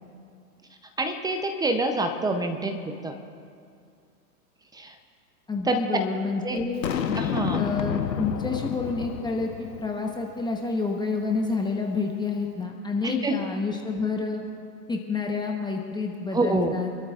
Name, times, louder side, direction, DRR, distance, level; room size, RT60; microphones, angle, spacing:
voice 1, 1.0-3.2 4.7-4.9 5.7-5.8 6.4-6.6 7.2-7.7 13.0-13.5 16.3-16.8, right 2 dB, 10° right, 6 dB, 0.5 m, -26 dB
voice 2, 5.5-6.9 7.6-14.4 14.9-16.9, left 4 dB, 10° left, 1 dB, 1.0 m, -29 dB
Boom, 6.8-10.1, left 8 dB, 90° left, 1.1 m, -30 dB
27.0 x 13.0 x 2.4 m, 2.3 s
hypercardioid pair, 115°, 49 cm